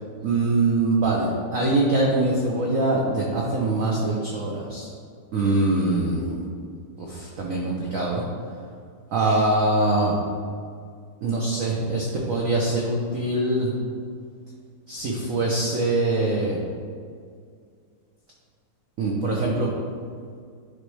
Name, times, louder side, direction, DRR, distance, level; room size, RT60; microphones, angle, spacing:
voice 1, 0.2-4.9 5.3-6.4 7.0-8.2 9.1-10.1 11.2-13.7 14.9-16.6 19.0-19.7, right 2 dB, 75° right, -2 dB, 0.7 m, -23 dB
10.0 x 3.4 x 3.2 m, 2.1 s
omnidirectional pair, 2.2 m